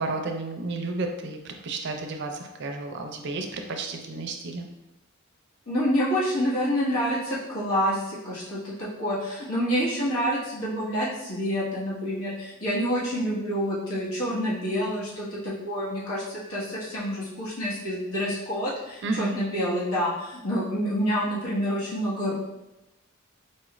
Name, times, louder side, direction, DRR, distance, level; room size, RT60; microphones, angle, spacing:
voice 1, 0.0-4.7 19.0-19.4, right 3 dB, 55° right, 4 dB, 0.4 m, -32 dB
voice 2, 5.7-22.3, equal, 85° left, -7 dB, 1.4 m, -28 dB
4.3 x 2.4 x 3.0 m, 0.96 s
head